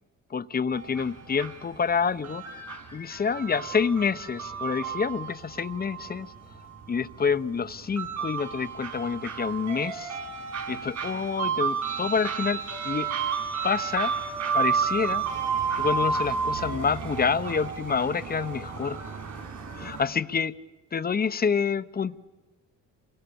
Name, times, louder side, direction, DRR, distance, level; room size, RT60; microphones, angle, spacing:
voice 1, 0.3-2.6 2.9-6.3 6.9-10.1 10.7-13.1 13.6-14.1 14.5-15.2 15.8-19.0 19.8-20.5 20.9-22.2, left 6 dB, 30° left, 14 dB, 0.8 m, -28 dB
sound 1, 0.7-20.0, right 6 dB, 65° right, 5.6 m, -32 dB
28.0 x 23.5 x 7.0 m, 1.2 s
cardioid pair, 90°, 30 cm